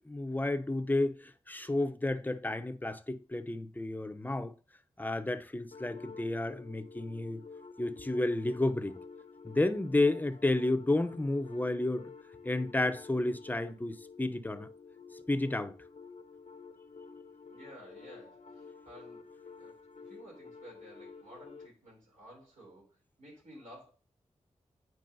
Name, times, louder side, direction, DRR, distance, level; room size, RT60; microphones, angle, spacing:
voice 1, 0.0-4.5 5.0-7.4 7.8-9.0 9.4-12.1 12.4-14.7 15.3-15.7, left 2 dB, 15° left, 0.7 m, -31 dB
sound 1, 5.7-21.7, left 5 dB, 65° left, 0.8 m, -50 dB
voice 2, 17.5-19.3 19.6-23.9, right 1 dB, 75° right, 3.3 m, -54 dB
9.2 x 4.6 x 2.7 m
cardioid pair, 40°, 13 cm